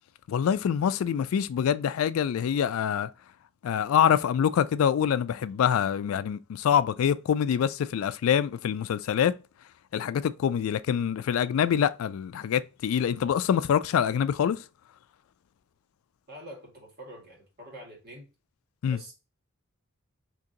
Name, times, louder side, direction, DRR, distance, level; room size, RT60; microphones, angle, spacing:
voice 1, 0.3-3.1 3.6-9.3 9.9-14.6 18.8-19.0, left 8 dB, 75° left, 0.3 m, -25 dB
voice 2, 16.3-18.3 18.9-19.1, right 1 dB, 50° right, 1.6 m, -45 dB
3.7 x 2.9 x 2.7 m
head